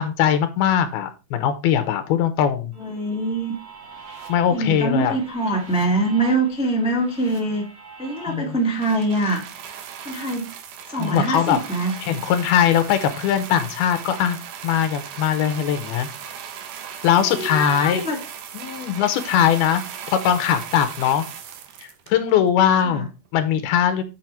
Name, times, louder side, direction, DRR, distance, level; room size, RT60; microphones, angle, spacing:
voice 1, 0.0-2.7 4.3-5.2 8.3-8.6 11.0-11.6 12.0-14.4 14.6-16.1 17.0-18.0 18.5-19.8 20.1-21.2 22.1-24.0, left 9 dB, 85° left, 10 dB, 2.8 m, -20 dB
sound 1, 2.7-8.9, right 5 dB, 40° right, 2.0 m, -44 dB
voice 2, 2.8-3.5 4.5-7.7 8.0-9.4 10.0-10.5 10.9-11.9 17.2-18.2 22.9-23.1, right 2 dB, 5° right, -1 dB, 0.6 m, -24 dB
sound 2, 8.8-22.5 23.3-23.4, right 8 dB, 65° right, 2.3 m, -37 dB
7.6 x 6.2 x 4.4 m, 0.29 s
omnidirectional pair, 4.4 m